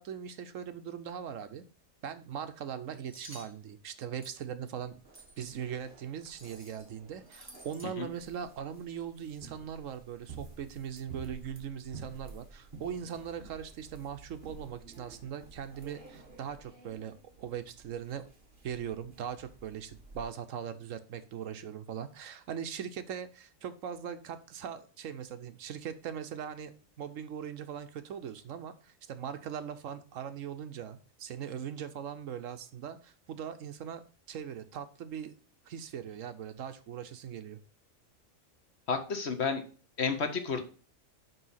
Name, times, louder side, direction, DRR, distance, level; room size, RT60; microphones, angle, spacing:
voice 1, 0.0-1.6 2.0-5.0 5.4-18.3 18.6-35.3 35.7-37.6, right 8 dB, 70° right, 10 dB, 1.0 m, -40 dB
sound 1, 3.1-3.5 4.2-4.4 5.1-5.6 6.3-6.9 7.2-7.9, right 1 dB, 10° right, 1.4 m, -52 dB
sound 2, 4.8-20.2, right 4 dB, 40° right, 1.4 m, -52 dB
voice 2, 38.9-39.6 40.0-40.6, left 5 dB, 55° left, 7 dB, 1.1 m, -31 dB
5.6 x 4.9 x 5.6 m, 0.38 s
omnidirectional pair, 1.4 m